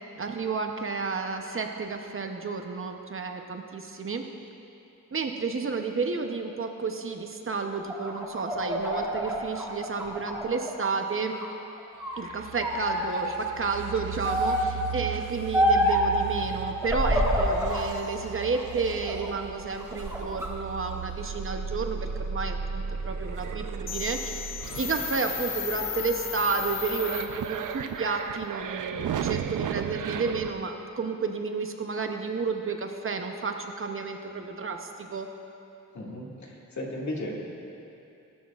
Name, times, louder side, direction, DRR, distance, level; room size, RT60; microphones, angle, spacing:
voice 1, 0.2-4.3 5.1-11.4 12.2-24.5 24.8-35.3, right 4 dB, 40° right, 4 dB, 0.8 m, -31 dB
sound 1, 7.7-11.0 11.3-12.2 12.6-13.3 14.2-14.8 15.5-16.1 16.8-17.9 18.4-19.3 19.8-20.5, equal, 10° right, 1.9 m, -27 dB
sound 2, 12.2-30.5, right 7 dB, 75° right, 0.6 m, -36 dB
sound 3, 23.9-27.7, left 8 dB, 40° left, 0.5 m, -35 dB
voice 2, 35.9-37.4, left 1 dB, 60° left, -3 dB, 2.1 m, -35 dB
19.0 x 12.5 x 2.4 m, 2.8 s
wide cardioid pair, 130°, 32 cm